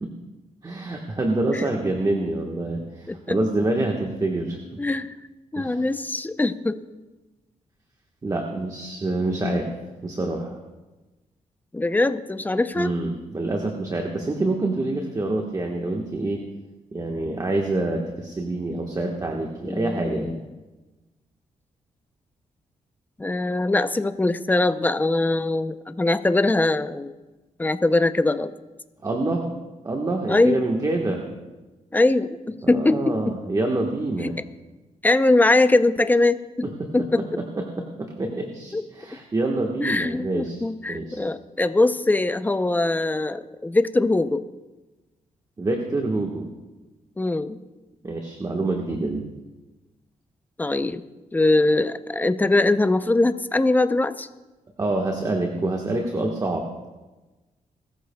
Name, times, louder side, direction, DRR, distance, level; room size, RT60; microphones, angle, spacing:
voice 1, 0.6-4.6 5.6-5.8 8.2-9.7 10.0-10.6 12.7-16.4 16.9-20.4 29.0-29.4 29.8-31.4 32.6-34.4 36.6-36.9 37.2-40.6 40.9-41.2 45.6-46.5 48.0-49.3 54.8-56.7, right 2 dB, 25° right, 1 dB, 1.3 m, -26 dB
voice 2, 3.1-3.4 4.8-5.2 5.5-6.8 9.4-9.6 11.7-12.9 19.7-20.4 23.2-27.1 27.6-28.5 30.3-30.6 31.9-33.4 34.2-34.3 35.0-36.7 36.9-37.2 38.7-38.8 39.8-44.4 47.2-47.6 50.6-51.0 51.3-54.3, left 2 dB, 15° left, 11 dB, 0.5 m, -22 dB
21.0 x 13.5 x 2.3 m, 1.1 s
cardioid pair, 105°, 13 cm